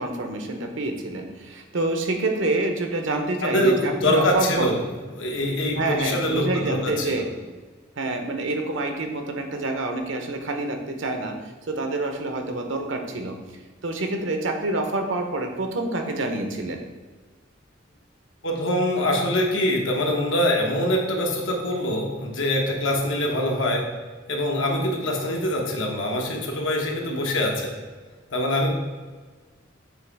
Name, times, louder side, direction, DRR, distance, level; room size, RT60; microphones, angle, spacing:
voice 1, 0.0-4.7 5.8-7.3 8.0-13.4 13.8-16.8 23.1-23.4 27.1-27.3, right 2 dB, 75° right, 4 dB, 0.9 m, -27 dB
voice 2, 3.4-4.8 5.1-7.3 18.4-23.8 24.3-27.8 28.3-28.7, left 1 dB, 80° left, 0 dB, 1.2 m, -24 dB
7.5 x 2.9 x 4.7 m, 1.4 s
head